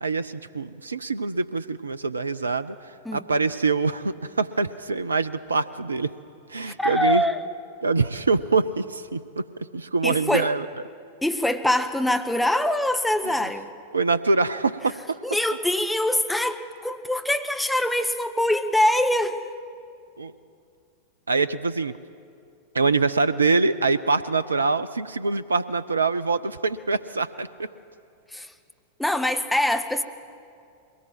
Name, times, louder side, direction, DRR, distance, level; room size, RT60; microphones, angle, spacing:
voice 1, 0.0-6.1 6.5-7.2 7.8-9.4 9.7-10.7 13.2-13.3 13.9-15.2 20.2-20.3 21.3-21.9 22.7-27.7, right 4 dB, 75° right, 14 dB, 0.4 m, -24 dB
voice 2, 6.6-7.4 10.0-10.5 11.2-13.7 15.2-19.4 28.3-28.5 29.0-30.0, left 1 dB, 5° left, 7 dB, 0.9 m, -24 dB
22.0 x 18.5 x 7.6 m, 2.4 s
figure-of-eight pair, 90°, 0 cm